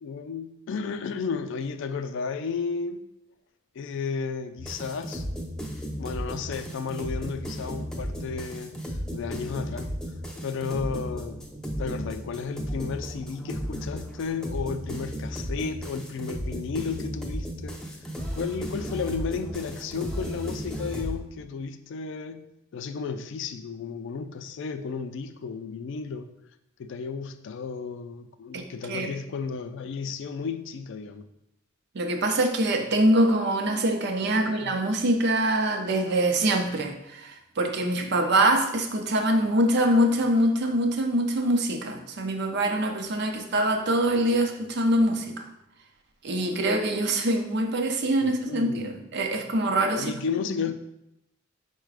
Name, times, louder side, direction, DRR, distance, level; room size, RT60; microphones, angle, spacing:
voice 1, 0.0-3.0 3.8-5.2 6.0-9.9 10.4-11.4 11.8-22.5 22.7-26.3 26.8-31.3 34.3-34.8 48.2-48.9 49.9-50.7, left 5 dB, 65° left, 10 dB, 0.3 m, -33 dB
sound 1, 4.6-21.2, equal, 5° left, 0.4 m, -34 dB
voice 2, 28.5-29.1 31.9-45.4 46.2-50.1, right 1 dB, 55° right, 5 dB, 0.5 m, -24 dB
4.8 x 2.2 x 4.7 m, 0.83 s
head